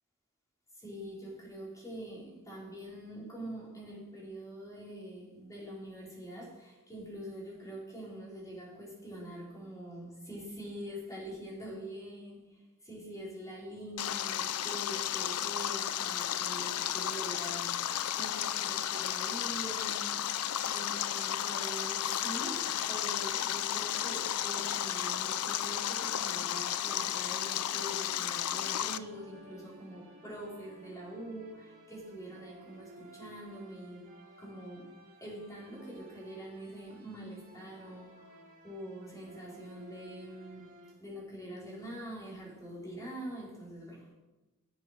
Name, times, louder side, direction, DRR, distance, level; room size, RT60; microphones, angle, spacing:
voice 1, 0.8-20.2 20.6-34.1 34.4-34.9 35.2-40.7 41.0-44.1, right 1 dB, 15° left, -5 dB, 4.4 m, -44 dB
Stream, 14.0-29.0, left 10 dB, 75° left, 0.5 m, -33 dB
sound 1, 27.1-40.9, right 2 dB, 40° right, 2.6 m, -56 dB
11.5 x 7.7 x 6.6 m, 1.1 s
head